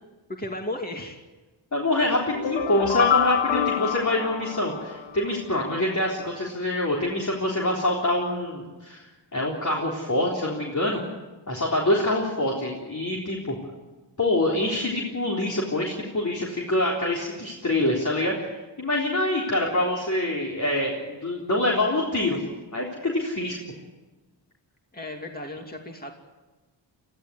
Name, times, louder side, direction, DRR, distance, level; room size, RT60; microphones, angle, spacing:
voice 1, 0.3-1.2 24.9-26.1, left 1 dB, 20° left, 2 dB, 2.5 m, -34 dB
voice 2, 1.7-11.0 11.5-13.6 14.2-22.4 22.7-23.6, left 1 dB, 40° left, -3 dB, 3.8 m, -25 dB
sound 1, 2.3-5.4, left 9 dB, 75° left, 1.2 m, -26 dB
23.5 x 15.0 x 9.6 m, 1.2 s
wide cardioid pair, 90°, 45 cm